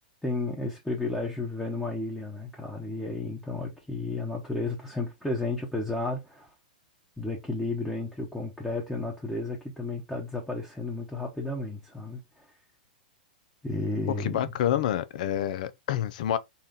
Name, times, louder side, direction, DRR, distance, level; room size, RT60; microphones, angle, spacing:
voice 1, 0.2-6.5 7.2-12.4 13.6-14.5, left 2 dB, 5° left, 1.0 m, -32 dB
voice 2, 14.2-16.4, left 11 dB, 60° left, 0.5 m, -28 dB
4.2 x 2.4 x 3.6 m
hypercardioid pair, 115°, 5 cm